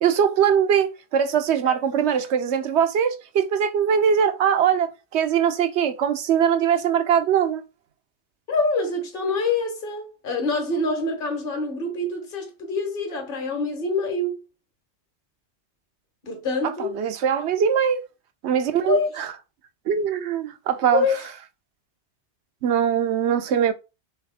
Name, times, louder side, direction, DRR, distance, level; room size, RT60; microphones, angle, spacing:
voice 1, 0.0-7.6 16.6-18.0 18.4-19.3 19.9-21.1 22.6-23.7, right 8 dB, 80° right, 0.9 m, -21 dB
voice 2, 8.5-14.4 16.2-17.0 18.9-19.1 20.9-21.2, left 3 dB, 55° left, 1.4 m, -25 dB
4.0 x 3.4 x 3.5 m
omnidirectional pair, 1.1 m